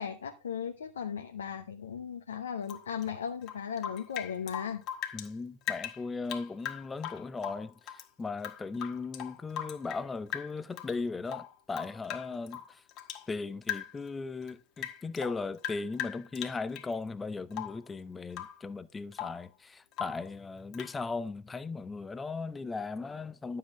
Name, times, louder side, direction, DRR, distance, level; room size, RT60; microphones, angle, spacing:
voice 1, 0.0-4.8, left 7 dB, 65° left, 0.9 m, -37 dB
Rain / Drip, 2.6-5.3 5.6-8.1 8.4-10.1 10.3-11.0 11.3-13.3 13.6-14.1 14.4-16.9 17.5-17.9 18.3-18.6 18.9-19.5 19.9-20.3 20.7-21.0, left 10 dB, 35° left, 1.3 m, -40 dB
voice 2, 5.1-12.8 13.3-23.6, left 4 dB, 15° left, 0.7 m, -37 dB
11.5 x 7.6 x 3.7 m
figure-of-eight pair, 90°, 0 cm